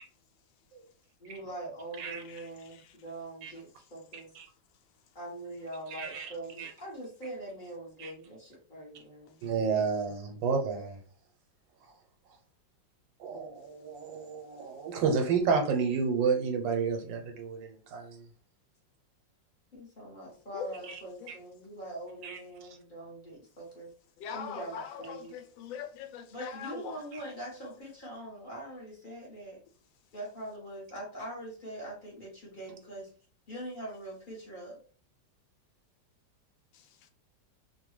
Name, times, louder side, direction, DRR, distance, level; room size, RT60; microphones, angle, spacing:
voice 1, 1.2-4.3 5.1-9.4 19.7-23.9 24.3-25.3 26.3-29.6 30.1-33.1 33.5-34.8, right 1 dB, 35° left, 0.9 m, -43 dB
voice 2, 2.2-3.0 20.5-20.7 21.2-21.3 24.2-27.0 36.7-37.1, left 8 dB, 85° left, 1.3 m, -42 dB
voice 3, 5.9-6.3 6.6-6.7 8.0-8.1 9.4-11.0 13.2-18.2 21.3-21.4 22.2-22.4, right 5 dB, 85° right, 1.4 m, -30 dB
3.1 x 2.3 x 3.1 m
omnidirectional pair, 2.0 m